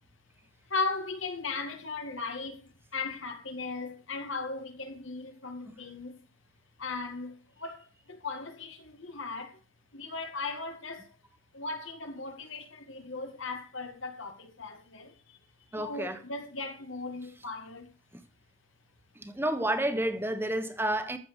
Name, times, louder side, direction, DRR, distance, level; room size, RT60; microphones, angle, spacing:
voice 1, 0.7-2.6 2.9-6.1 6.8-7.3 7.6-7.8 8.1-9.5 9.9-11.0 11.5-15.1 15.8-17.9, left 3 dB, 80° left, 2.3 m, -37 dB
voice 2, 15.7-16.2 19.2-21.2, right 1 dB, 10° right, 1.2 m, -30 dB
14.5 x 7.2 x 5.0 m
head